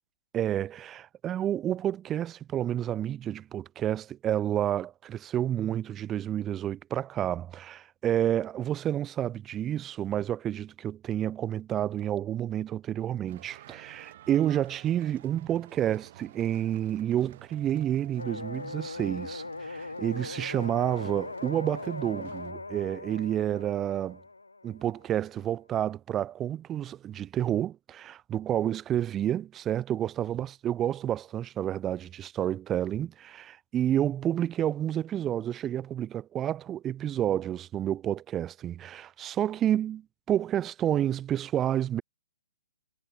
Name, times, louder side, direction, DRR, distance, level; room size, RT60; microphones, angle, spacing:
voice 1, 0.3-24.2 24.6-42.0, right 11 dB, 15° right, 1.2 m, -30 dB
sound 1, 13.3-22.5, right 13 dB, 40° right, 3.6 m, -52 dB
sound 2, 18.2-25.1, left 3 dB, 75° left, 5.5 m, -40 dB
figure-of-eight pair, 125°, 0 cm